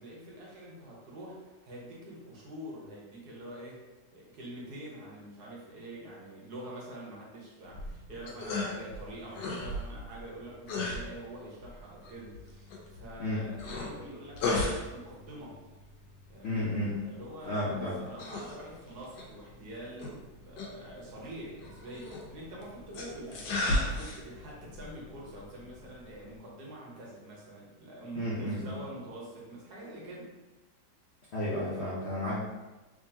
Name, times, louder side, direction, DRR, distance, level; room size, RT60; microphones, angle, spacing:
voice 1, 0.0-3.8 4.1-15.6 16.3-16.8 17.0-30.3, right 1 dB, 70° right, -4 dB, 1.4 m, -45 dB
sound 1, 7.6-26.4, left 2 dB, 85° left, 1.3 m, -37 dB
voice 2, 16.4-16.9 17.5-17.9 28.1-28.7 31.3-32.4, left 1 dB, 55° left, -8 dB, 0.7 m, -32 dB
3.6 x 3.1 x 2.7 m, 1.2 s
omnidirectional pair, 1.8 m